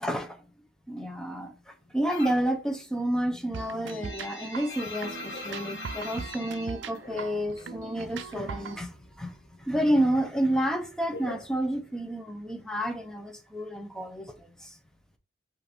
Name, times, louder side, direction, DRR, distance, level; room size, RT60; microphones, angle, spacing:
voice 1, 0.0-0.4 0.9-14.8, right 1 dB, 5° left, 0.7 m, -30 dB
sound 1, 2.1-2.5 2.9-7.8 8.0-9.1 9.4-12.2, left 2 dB, 70° left, 1.3 m, -42 dB
sound 2, 3.5-8.8, right 5 dB, 85° right, 0.4 m, -40 dB
5.4 x 2.7 x 3.4 m
head